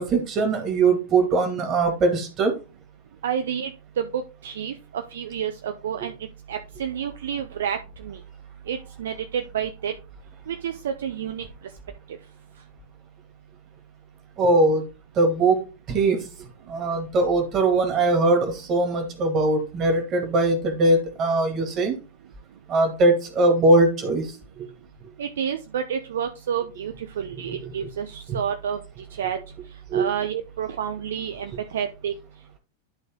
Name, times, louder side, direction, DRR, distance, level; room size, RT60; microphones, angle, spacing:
voice 1, 0.0-2.5 14.4-14.9 15.2-16.2 16.7-22.0 22.7-24.3 24.6-24.7 27.5-27.9 28.3-28.4 29.9-30.1, right 2 dB, 30° right, 5 dB, 2.4 m, -21 dB
voice 2, 3.2-3.7 4.0-6.1 6.5-7.8 8.0-8.2 8.7-9.9 10.5-11.5 25.2-28.8 29.2-29.4 29.9-32.1, right 8 dB, 60° right, 7 dB, 0.7 m, -29 dB
11.5 x 4.0 x 3.8 m, 0.31 s
figure-of-eight pair, 90°, 0 cm